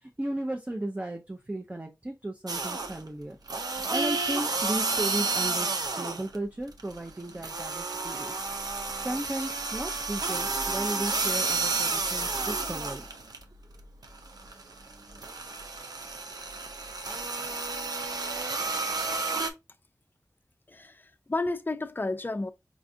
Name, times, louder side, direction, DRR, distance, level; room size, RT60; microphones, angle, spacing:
voice 1, 0.0-3.4 3.9-5.7 6.0-8.3 8.9-13.0, right 1 dB, 25° right, 0.5 m, -35 dB
sound 1, 2.5-3.1 3.5-6.4 6.7-13.4 13.8-19.5, right 3 dB, 85° right, 0.5 m, -31 dB
voice 2, 20.7-22.5, left 2 dB, 30° left, 0.4 m, -32 dB
5.0 x 2.3 x 2.6 m
wide cardioid pair, 60°, 7 cm